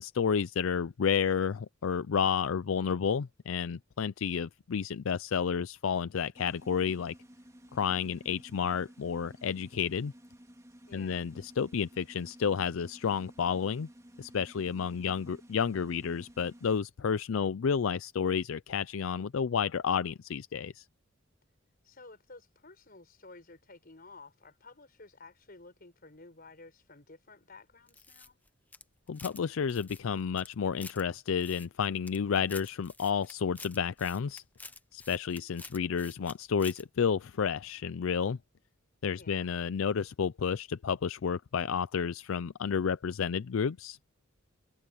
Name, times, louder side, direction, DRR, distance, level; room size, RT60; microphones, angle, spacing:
voice 1, 0.0-7.1 7.7-10.1 10.9-13.9 14.2-20.8 29.1-34.4 34.9-38.4 39.0-44.0, left 6 dB, 85° left, 0.4 m, -31 dB
sound 1, 6.3-16.8, equal, 15° right, 2.1 m, -54 dB
voice 2, 10.9-11.2 21.8-28.4 39.2-39.5, left 3 dB, 50° left, 5.5 m, -53 dB
sound 2, 27.9-29.4 29.7-31.0 31.4-32.2 32.5-36.3 36.6-36.8, left 3 dB, 10° left, 0.7 m, -49 dB
head